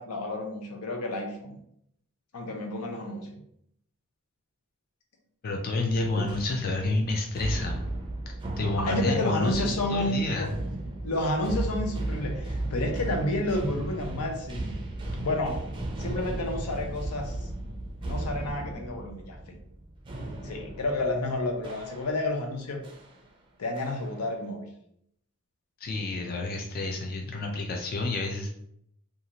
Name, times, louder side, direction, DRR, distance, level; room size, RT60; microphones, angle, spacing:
voice 1, 0.0-1.6 2.3-3.4 6.2-6.3 8.8-10.5 11.0-14.8 15.2-15.6 16.0-17.4 18.1-19.6 20.4-22.8 23.6-24.7, left 1 dB, 90° left, 3 dB, 0.6 m, -30 dB
voice 2, 5.4-7.9 8.6-10.5 25.8-28.5, left 2 dB, 40° left, 2 dB, 0.4 m, -29 dB
sound 1, 5.9-22.4 22.8-23.1 23.8-24.3, right 1 dB, 20° right, 0.4 m, -35 dB
2.6 x 2.4 x 2.9 m, 0.71 s
head